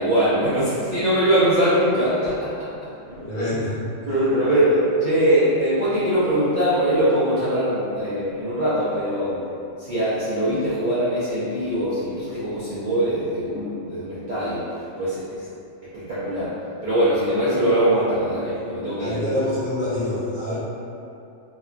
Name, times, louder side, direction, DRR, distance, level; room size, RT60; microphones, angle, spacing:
voice 1, 0.0-2.7 3.1-3.2 4.1-9.4 9.8-14.6 15.0-15.2 15.9-16.5 16.8-19.2, right 1 dB, 50° right, -13 dB, 0.6 m, -22 dB
voice 2, 3.2-3.8 19.0-20.6, left 1 dB, 40° left, -13 dB, 0.7 m, -26 dB
2.9 x 2.3 x 2.4 m, 2.6 s
omnidirectional pair, 1.3 m